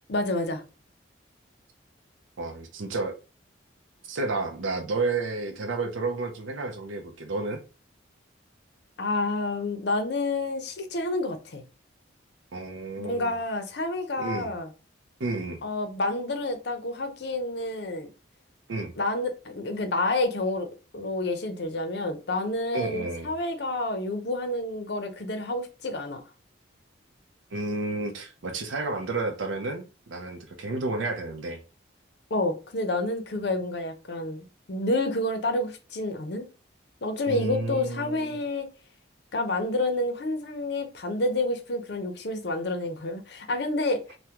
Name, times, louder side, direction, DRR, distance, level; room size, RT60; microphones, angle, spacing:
voice 1, 0.1-0.6 9.0-11.6 13.0-14.7 15.6-18.1 19.0-20.7 20.9-26.2 32.3-36.5 37.0-38.7 39.3-44.0, left 2 dB, 55° left, 0.6 m, -29 dB
voice 2, 2.4-3.1 4.1-7.6 12.5-13.3 14.2-14.5 15.2-15.6 18.7-18.9 22.7-23.3 27.5-31.6 37.3-38.4, right 3 dB, 75° right, 0.5 m, -31 dB
3.5 x 2.1 x 2.8 m
head